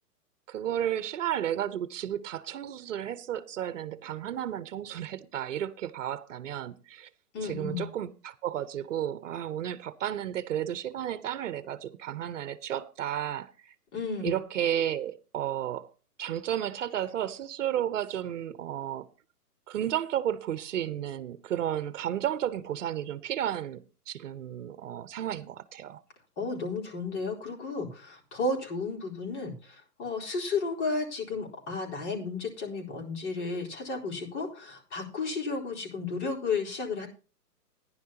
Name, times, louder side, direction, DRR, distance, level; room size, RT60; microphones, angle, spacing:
voice 1, 0.5-7.1 7.4-13.7 14.2-15.9 16.2-19.1 19.7-26.0, right 11 dB, 50° right, 1.0 m, -33 dB
voice 2, 7.3-7.9 13.9-14.3 26.4-37.1, left 3 dB, 45° left, 4.2 m, -33 dB
15.0 x 10.5 x 2.9 m
hypercardioid pair, 155°, 48 cm